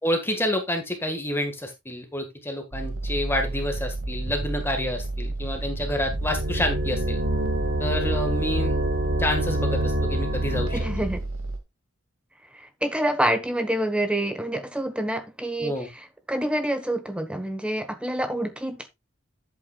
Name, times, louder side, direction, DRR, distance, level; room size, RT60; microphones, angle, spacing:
voice 1, 0.0-7.2 7.8-8.8 9.2-10.8 15.6-15.9, left 1 dB, 10° left, 1.6 m, -28 dB
sound 1, 2.7-11.6, right 2 dB, 75° right, 2.1 m, -31 dB
sound 2, 6.1-11.2, right 1 dB, 55° right, 3.3 m, -27 dB
voice 2, 10.7-11.2 12.5-18.9, right 1 dB, 5° right, 1.2 m, -27 dB
10.5 x 8.2 x 2.4 m
head